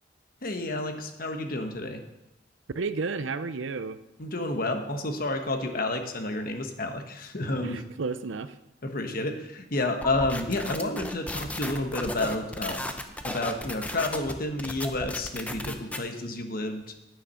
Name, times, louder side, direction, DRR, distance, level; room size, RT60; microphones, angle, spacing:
voice 1, 0.4-2.0 4.2-7.8 8.8-12.9 13.2-16.9, left 2 dB, 50° left, 5 dB, 1.2 m, -30 dB
voice 2, 2.7-4.0 7.6-8.5, right 4 dB, 75° right, 13 dB, 0.6 m, -32 dB
sound 1, 10.0-16.0, left 1 dB, 5° left, 0.7 m, -35 dB
9.7 x 9.3 x 5.7 m, 0.93 s
head